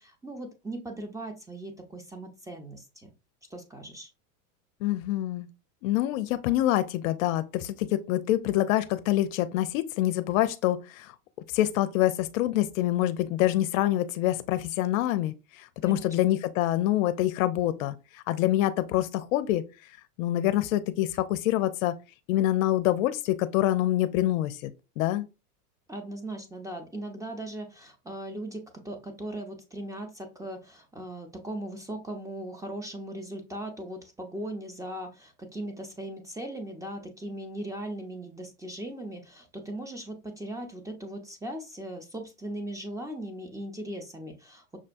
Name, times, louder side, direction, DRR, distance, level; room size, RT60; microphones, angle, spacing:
voice 1, 0.0-3.1 3.5-4.1 15.8-16.1 25.9-44.8, right 1 dB, 5° right, 0.7 m, -38 dB
voice 2, 4.8-5.5 5.8-11.1 11.5-19.6 20.2-22.0 22.3-24.7 25.0-25.2, left 14 dB, 65° left, 0.5 m, -26 dB
6.0 x 2.2 x 2.5 m
hypercardioid pair, 100°, 45 cm